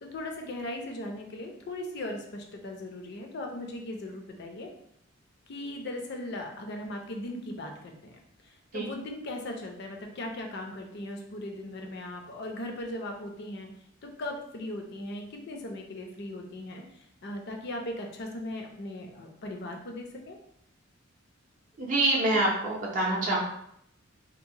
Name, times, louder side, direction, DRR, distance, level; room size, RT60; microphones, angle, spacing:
voice 1, 0.0-4.7 5.5-13.7 14.0-20.4, left 1 dB, 55° left, 3 dB, 0.4 m, -38 dB
voice 2, 21.8-23.4, right 2 dB, 40° right, -3 dB, 0.5 m, -26 dB
2.8 x 2.1 x 2.6 m, 0.72 s
head